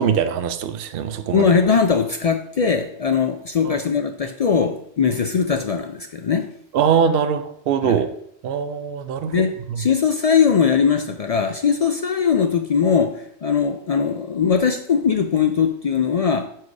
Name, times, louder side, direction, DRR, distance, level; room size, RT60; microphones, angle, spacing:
voice 1, 0.0-1.5 3.6-3.8 6.7-8.1 8.4-9.3 9.7-9.8, right 7 dB, 65° right, 0.7 m, -22 dB
voice 2, 1.3-6.5 7.8-8.0 9.3-16.5, left 6 dB, 60° left, 0.4 m, -20 dB
4.7 x 4.6 x 6.0 m
omnidirectional pair, 1.1 m